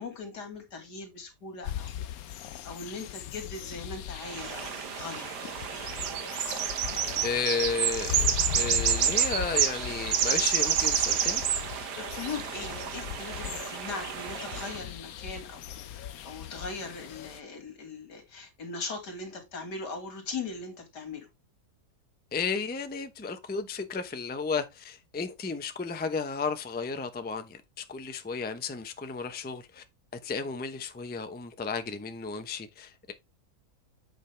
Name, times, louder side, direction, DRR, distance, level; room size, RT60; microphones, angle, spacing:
voice 1, 0.0-1.9 2.6-5.4 12.0-21.3, left 4 dB, 90° left, 2.6 m, -40 dB
sound 1, 1.6-17.4, left 11 dB, 70° left, 1.1 m, -39 dB
sound 2, 4.2-14.8, right 9 dB, 80° right, 1.5 m, -29 dB
voice 2, 7.2-11.4 22.3-29.8 30.2-33.1, left 5 dB, 15° left, 0.4 m, -33 dB
8.1 x 5.3 x 3.3 m
omnidirectional pair, 1.7 m